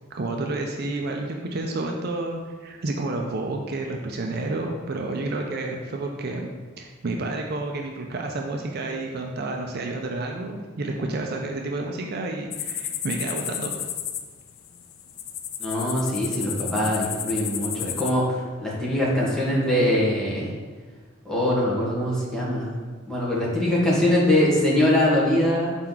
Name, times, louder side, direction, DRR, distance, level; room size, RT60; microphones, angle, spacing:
voice 1, 0.1-13.9, right 2 dB, 50° right, 2 dB, 0.5 m, -30 dB
sound 1, 12.5-18.1, left 10 dB, 75° left, 0.5 m, -32 dB
voice 2, 15.6-20.5 21.2-22.7 23.1-25.8, left 1 dB, 5° left, -7 dB, 1.4 m, -22 dB
6.0 x 4.4 x 3.9 m, 1.4 s
head